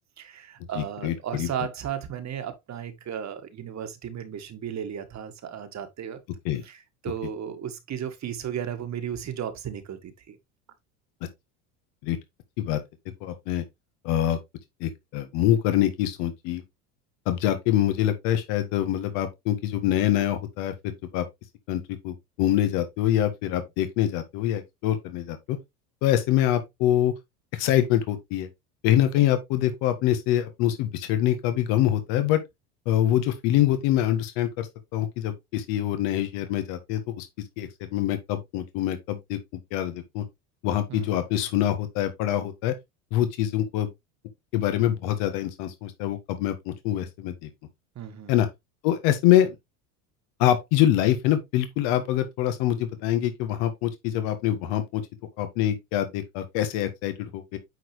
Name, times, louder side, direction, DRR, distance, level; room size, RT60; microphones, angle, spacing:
voice 1, 0.2-6.2 6.6-10.4 40.9-41.2 48.0-48.3, right 9 dB, 35° right, 1.7 m, -35 dB
voice 2, 0.8-1.5 6.5-6.6 12.0-12.2 12.6-12.8 13.2-13.6 14.0-14.4 14.8-16.6 17.3-21.3 21.7-25.6 26.0-27.1 27.5-28.5 28.8-32.4 32.9-34.7 34.9-37.3 37.6-40.2 40.6-42.7 43.1-43.9 44.5-47.5 48.3-48.5 48.8-49.6 50.4-55.0 55.4-57.6, left 12 dB, 65° left, 1.7 m, -25 dB
9.1 x 4.5 x 3.3 m
hypercardioid pair, 90°, 46 cm